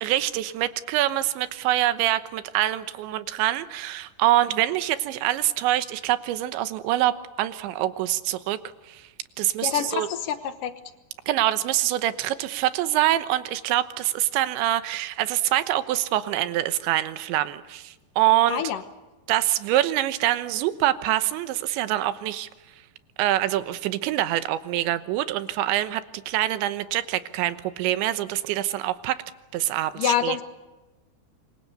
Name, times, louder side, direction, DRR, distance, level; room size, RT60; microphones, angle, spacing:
voice 1, 0.0-8.6 8.9-9.1 9.4-10.1 11.3-18.6 19.3-22.5 23.2-29.2 29.5-30.4, right 14 dB, 85° right, 12 dB, 3.4 m, -25 dB
voice 2, 9.6-10.7 18.5-18.8 30.0-30.4, left 9 dB, 65° left, 10 dB, 2.3 m, -26 dB
27.5 x 24.0 x 6.9 m, 1.1 s
omnidirectional pair, 5.1 m